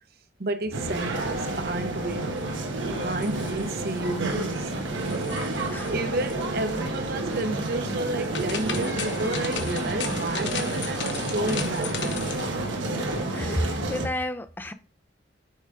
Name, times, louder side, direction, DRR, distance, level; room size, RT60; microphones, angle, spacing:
voice 1, 0.4-2.3 3.0-4.7 5.1-12.2, right 2 dB, 55° right, 0.8 m, -31 dB
sound 1, 0.7-14.1, right 2 dB, 80° right, 1.4 m, -30 dB
sound 2, 3.0-4.0 4.3-4.7 5.0-5.9 6.2-6.3 8.0-12.5, left 6 dB, 70° left, 1.0 m, -36 dB
voice 2, 13.3-14.7, equal, 10° left, 0.5 m, -30 dB
6.5 x 4.9 x 3.7 m
head